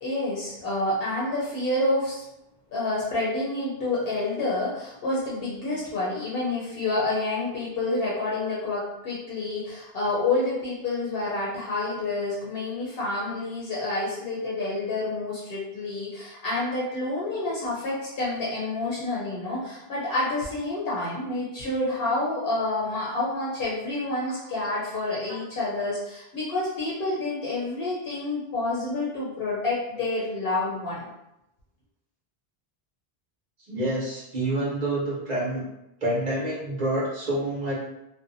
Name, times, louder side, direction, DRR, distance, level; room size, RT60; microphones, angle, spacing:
voice 1, 0.0-2.2 2.7-31.1, left 2 dB, 70° left, -6 dB, 0.8 m, -28 dB
voice 2, 33.7-35.6 36.0-37.8, right 1 dB, 45° right, -6 dB, 0.9 m, -27 dB
2.7 x 2.0 x 2.5 m, 0.88 s
omnidirectional pair, 1.0 m